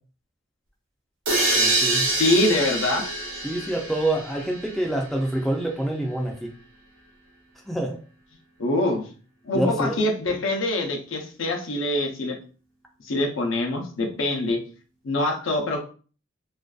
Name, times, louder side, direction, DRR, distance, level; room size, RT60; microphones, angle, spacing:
sound 1, 1.3-5.0, right 2 dB, 85° right, 0.9 m, -25 dB
voice 1, 1.5-2.1 3.4-6.5 7.7-8.0 9.5-10.0, right 1 dB, ahead, -1 dB, 0.3 m, -26 dB
voice 2, 2.1-3.1 8.6-9.1 9.4-12.4 13.0-14.6 15.0-15.8, left 2 dB, 80° left, 2 dB, 0.6 m, -24 dB
2.5 x 2.2 x 2.3 m, 0.39 s
head